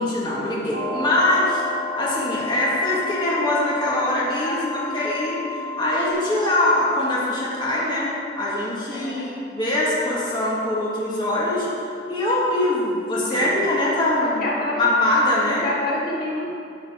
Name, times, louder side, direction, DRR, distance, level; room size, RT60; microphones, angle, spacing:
voice 1, 0.0-1.6 1.9-5.4 5.8-11.7 12.1-14.5 14.8-15.7, left 1 dB, 25° left, -6 dB, 1.9 m, -22 dB
sound 1, 0.7-6.1, left 3 dB, 50° right, 1.6 m, -31 dB
voice 2, 4.4-4.9 8.9-9.3 13.3-13.5 14.2-14.8 15.6-16.5, left 1 dB, 55° left, -5 dB, 1.9 m, -28 dB
10.5 x 7.0 x 5.0 m, 2.5 s
head